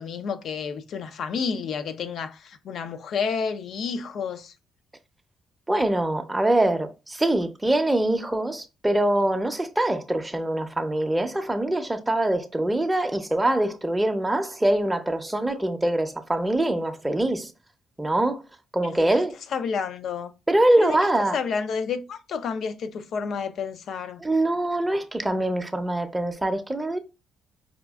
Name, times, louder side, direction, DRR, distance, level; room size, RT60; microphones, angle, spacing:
voice 1, 0.0-4.5 18.9-19.0 19.5-20.3 20.8-21.0 21.3-24.2, left 6 dB, 65° left, 0.4 m, -30 dB
voice 2, 5.7-17.5 18.0-18.4 18.7-19.4 20.5-21.4 24.2-27.0, right 1 dB, 10° right, 0.6 m, -24 dB
4.9 x 2.3 x 2.3 m
cardioid pair, 90°, 0 cm